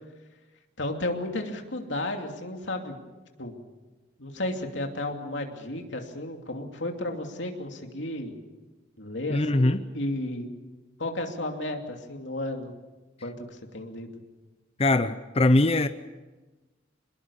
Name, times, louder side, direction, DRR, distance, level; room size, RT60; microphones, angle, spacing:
voice 1, 0.8-3.0 3.4-3.6 4.2-8.3 9.0-10.5 11.0-12.7 13.2-14.1, left 1 dB, 75° left, 2.7 m, -33 dB
voice 2, 9.3-9.8 14.8-15.9, left 2 dB, 30° left, 0.7 m, -21 dB
24.5 x 21.0 x 7.1 m
head